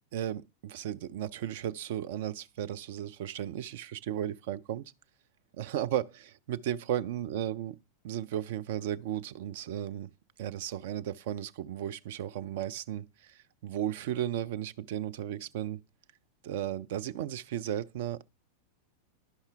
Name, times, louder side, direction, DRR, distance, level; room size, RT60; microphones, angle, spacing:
voice 1, 0.1-4.8 5.5-7.8 8.0-10.1 10.4-15.8 16.4-18.2, right 11 dB, 55° right, 0.4 m, -35 dB
11.0 x 5.5 x 3.4 m
figure-of-eight pair, 90°, 0 cm